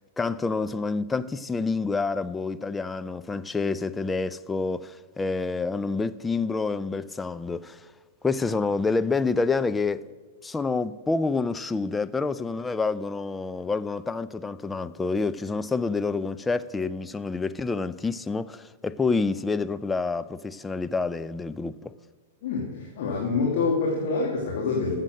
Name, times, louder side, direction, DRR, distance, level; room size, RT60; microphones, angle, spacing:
voice 1, 0.2-7.9 8.2-10.1 10.4-21.9, left 4 dB, 10° left, 0.4 m, -28 dB
voice 2, 22.4-24.9, left 4 dB, 55° left, 2.3 m, -26 dB
13.5 x 7.5 x 6.4 m
figure-of-eight pair, 100°, 0 cm